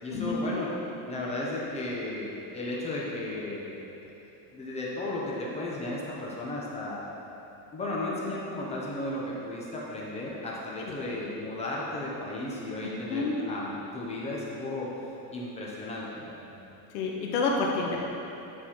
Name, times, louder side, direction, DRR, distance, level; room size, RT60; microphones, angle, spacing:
voice 1, 0.0-0.7 1.1-4.1 4.5-7.0 7.7-14.9 15.3-16.5, left 2 dB, 15° left, -5 dB, 0.6 m, -34 dB
voice 2, 16.9-18.0, left 3 dB, 80° left, -1 dB, 1.4 m, -28 dB
9.8 x 4.2 x 4.3 m, 3.0 s
cardioid pair, 165°, 46 cm